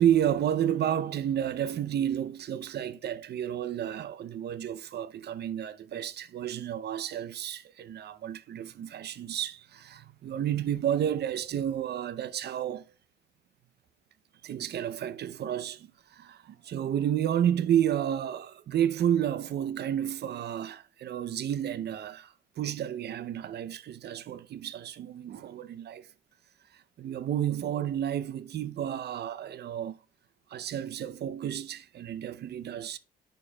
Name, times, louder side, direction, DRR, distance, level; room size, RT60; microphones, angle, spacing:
voice 1, 0.0-12.9 14.4-26.1 27.0-30.0 30.5-33.0, right 10 dB, 55° right, 0.6 m, -31 dB
10.0 x 4.5 x 2.2 m
cardioid pair, 90°, 20 cm